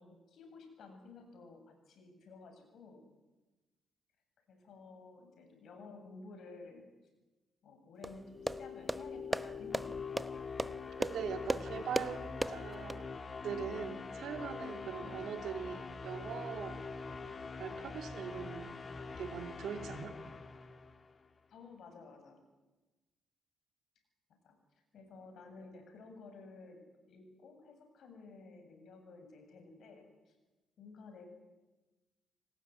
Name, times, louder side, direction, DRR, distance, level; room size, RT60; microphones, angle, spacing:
voice 1, 0.0-3.0 4.5-6.9 7.6-10.5 15.0-15.2 21.5-22.4 24.3-24.6 24.9-30.3 30.8-31.3, left 3 dB, 65° left, 5 dB, 7.8 m, -54 dB
sound 1, 8.0-13.0, right 1 dB, 10° right, 0.9 m, -38 dB
sound 2, 8.1-21.3, left 4 dB, 35° left, 1.9 m, -44 dB
voice 2, 11.0-12.2 12.5-13.1 13.4-16.8 17.6-18.7 19.2-20.2, right 8 dB, 75° right, 6 dB, 3.0 m, -41 dB
28.0 x 18.5 x 9.2 m, 1.1 s
cardioid pair, 90°, 0 cm